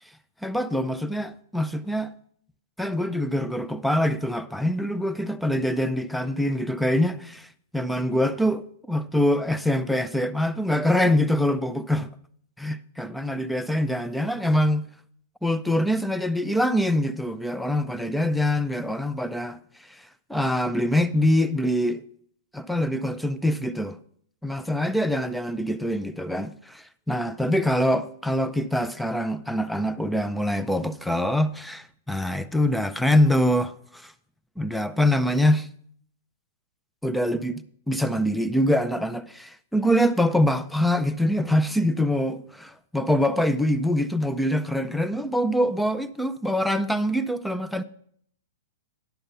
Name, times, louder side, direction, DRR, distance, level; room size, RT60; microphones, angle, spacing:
voice 1, 0.4-2.1 2.8-7.5 7.7-12.1 12.6-14.9 15.4-19.6 19.9-20.0 20.3-22.0 22.5-24.0 24.4-34.1 34.6-35.7 37.0-47.8, left 1 dB, ahead, 0.4 m, -24 dB
10.5 x 6.9 x 5.4 m
hypercardioid pair, 155°, 0 cm